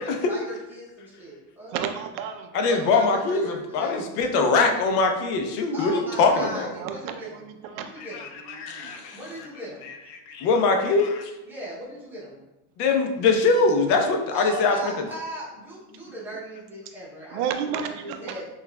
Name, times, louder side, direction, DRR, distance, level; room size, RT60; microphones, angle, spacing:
voice 1, 0.0-1.8 2.6-4.0 5.7-7.3 7.7-8.3 9.1-9.9 11.4-12.4 14.3-17.4 18.0-18.5, equal, 5° right, -8 dB, 0.7 m, -38 dB
voice 2, 1.7-3.1 4.4-4.8 6.7-8.1 8.4-9.0 17.3-18.5, right 8 dB, 85° right, 7 dB, 0.6 m, -33 dB
voice 3, 2.5-6.7 8.1-9.2 10.3-11.3 12.8-14.9, left 3 dB, 80° left, 4 dB, 0.8 m, -22 dB
5.6 x 2.4 x 2.2 m, 0.99 s
cardioid pair, 165°, 45 cm